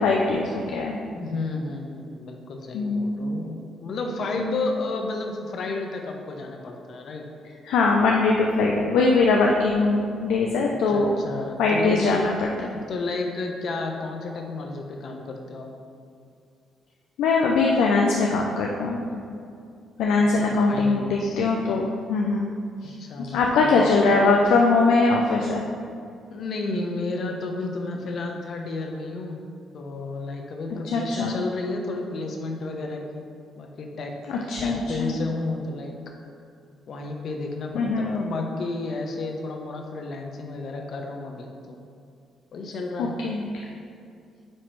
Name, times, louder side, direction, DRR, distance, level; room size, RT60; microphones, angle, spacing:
voice 1, 0.0-1.0 2.7-3.3 4.3-4.6 7.6-11.1 11.6-12.7 17.2-19.2 20.0-22.9 23.2-25.6 30.8-31.3 34.3-35.1 37.7-38.2 43.0-43.4, left 3 dB, 90° left, 0 dB, 0.5 m, -22 dB
voice 2, 1.1-7.2 10.6-12.2 12.9-15.7 20.4-21.4 23.0-24.0 26.3-29.4 29.7-33.2 33.5-34.1 34.6-35.9 36.9-41.8 42.5-43.2, left 3 dB, 60° left, 2 dB, 0.9 m, -32 dB
9.1 x 3.1 x 4.6 m, 2.4 s
cardioid pair, 90°, 0 cm